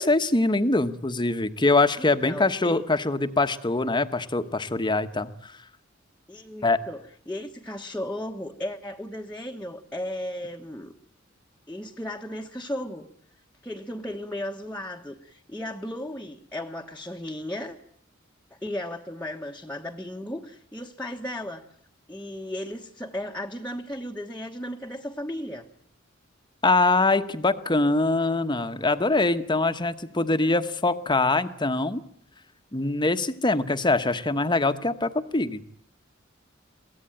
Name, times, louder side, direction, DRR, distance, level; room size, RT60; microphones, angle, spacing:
voice 1, 0.0-5.6 6.6-6.8 26.6-32.0 32.7-35.6, left 2 dB, 25° left, 10 dB, 1.2 m, -23 dB
voice 2, 2.0-2.8 6.3-10.9 11.7-13.1 13.6-17.8 18.5-21.6 22.1-25.7, left 1 dB, 5° left, -1 dB, 1.2 m, -35 dB
23.0 x 17.0 x 9.1 m, 0.66 s
head